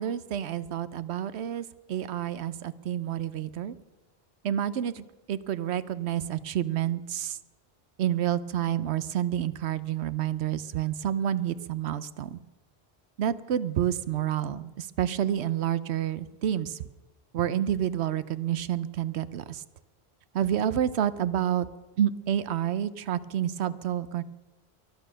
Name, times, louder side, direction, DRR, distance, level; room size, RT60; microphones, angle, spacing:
voice 1, 0.0-3.8 4.4-7.4 8.0-12.4 13.2-16.8 17.3-19.6 20.3-21.7 22.0-24.2, right 10 dB, 80° right, 16 dB, 0.9 m, -29 dB
23.0 x 9.0 x 6.4 m, 1.2 s
omnidirectional pair, 1.1 m